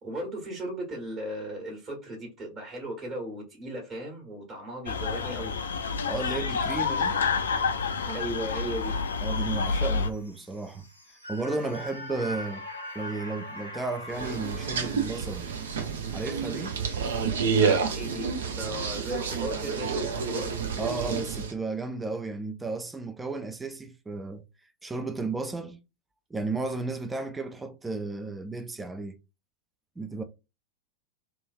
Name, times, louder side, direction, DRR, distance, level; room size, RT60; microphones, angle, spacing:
voice 1, 0.0-5.5 8.0-9.0 17.5-20.6, right 1 dB, 35° right, 1.4 m, -36 dB
sound 1, 4.9-10.1, left 5 dB, 65° left, 0.3 m, -28 dB
voice 2, 6.0-7.2 9.2-10.9 11.3-12.7 12.9-15.5 16.1-16.8 20.8-24.4 24.8-25.8 26.3-29.2 30.0-30.2, right 3 dB, 10° right, 0.4 m, -33 dB
sound 2, 7.5-19.8 20.2-20.3, left 1 dB, 90° right, 1.0 m, -45 dB
sound 3, 14.1-21.5, right 5 dB, 60° right, 0.5 m, -29 dB
3.0 x 2.3 x 2.5 m
figure-of-eight pair, 90°, 0 cm